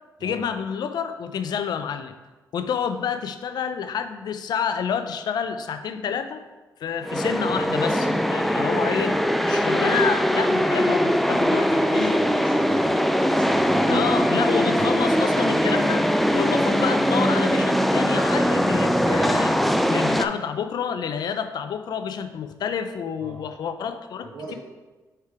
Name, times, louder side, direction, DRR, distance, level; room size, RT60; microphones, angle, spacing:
voice 1, 0.2-2.1 2.5-6.4 6.8-9.2 9.4-12.2 13.9-16.1 16.3-19.6 19.9-24.5, left 7 dB, 70° left, 9 dB, 0.4 m, -28 dB
sound 1, 7.0-20.3, equal, ahead, 0.4 m, -21 dB
voice 2, 11.7-13.0 13.3-14.1 23.2-23.4 24.3-24.6, right 2 dB, 85° right, -1 dB, 1.1 m, -39 dB
4.8 x 4.4 x 4.8 m, 1.2 s
cardioid pair, 60°, 7 cm